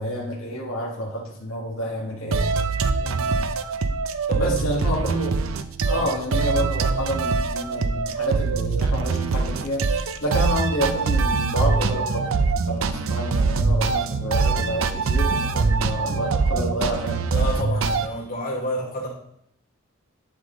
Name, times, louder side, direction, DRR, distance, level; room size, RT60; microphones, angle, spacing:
voice 1, 0.0-2.5 4.4-5.3 5.8-17.5, equal, 80° left, -4 dB, 1.7 m, -29 dB
sound 1, 2.3-18.1, right 4 dB, 80° right, 0.5 m, -23 dB
voice 2, 3.0-3.5 4.3-4.7 5.9-6.1 17.3-19.1, equal, 45° left, -4 dB, 2.7 m, -30 dB
11.0 x 3.7 x 3.8 m, 0.74 s
head